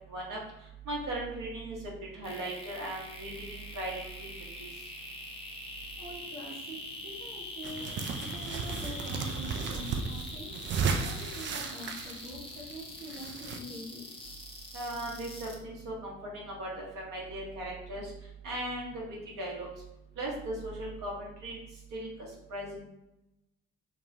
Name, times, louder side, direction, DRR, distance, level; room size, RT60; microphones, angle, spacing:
voice 1, 0.9-1.8 2.1-4.3 4.6-4.7 14.7-16.7 16.9-18.1 18.4-19.0 19.4-19.7 20.2-21.1 21.4-21.6 21.9-22.1 22.5-22.7, right 1 dB, 50° right, -3 dB, 1.3 m, -37 dB
sound 1, 2.2-15.6, left 2 dB, 15° left, 0.7 m, -43 dB
voice 2, 6.0-7.9 8.2-10.6 11.0-14.0, equal, 80° right, -5 dB, 1.0 m, -44 dB
sound 2, 7.6-13.6, right 5 dB, 30° right, 0.4 m, -34 dB
3.6 x 2.0 x 2.8 m, 0.90 s
figure-of-eight pair, 50°, 39 cm